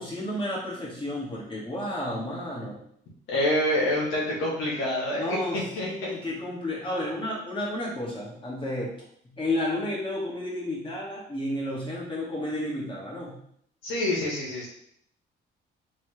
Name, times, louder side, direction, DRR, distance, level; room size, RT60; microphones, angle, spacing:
voice 1, 0.0-2.8 5.2-8.9 9.2-13.4, left 1 dB, 25° left, -5 dB, 1.9 m, -32 dB
voice 2, 3.3-6.1 13.8-14.7, left 1 dB, 85° left, -5 dB, 1.8 m, -27 dB
4.0 x 3.7 x 3.3 m, 0.67 s
cardioid pair, 90°, 20 cm